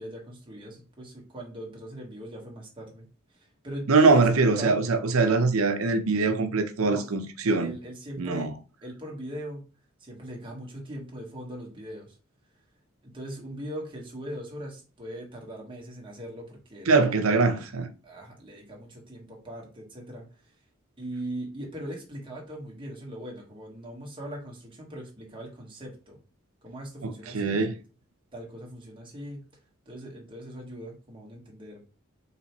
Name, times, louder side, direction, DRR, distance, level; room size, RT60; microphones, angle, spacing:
voice 1, 0.0-3.1 3.3-4.2 4.6-4.8 6.8-7.0 7.6-8.5 8.8-9.6 10.0-12.2 13.0-17.0 18.0-20.5 21.0-26.2 26.6-27.6 28.3-29.4 29.8-31.8, right 1 dB, 25° right, 1.3 m, -40 dB
voice 2, 3.9-7.7 8.2-8.5 16.9-17.9 27.0-27.7, right 4 dB, 80° right, 0.7 m, -23 dB
4.3 x 3.3 x 2.9 m
head